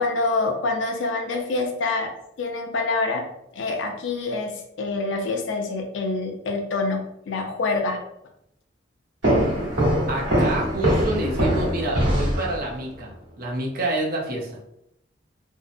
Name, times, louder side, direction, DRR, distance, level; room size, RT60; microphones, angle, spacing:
voice 1, 0.0-2.1 2.4-3.2 3.5-8.0, left 3 dB, 85° left, 2 dB, 0.5 m, -26 dB
sound 1, 9.2-12.9, right 1 dB, 85° right, 1.1 m, -22 dB
voice 2, 10.1-14.5, right 1 dB, 50° right, -2 dB, 0.6 m, -28 dB
2.6 x 2.0 x 2.5 m, 0.79 s
head